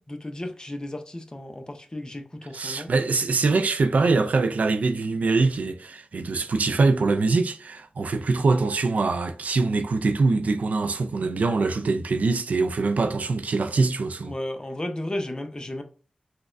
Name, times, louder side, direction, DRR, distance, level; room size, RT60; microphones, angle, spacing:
voice 1, 0.1-2.9 14.2-15.8, left 1 dB, 30° left, 0.6 m, -34 dB
voice 2, 2.5-14.3, right 3 dB, 75° right, 0.3 m, -23 dB
3.9 x 2.3 x 2.5 m
cardioid pair, 40°, 3 cm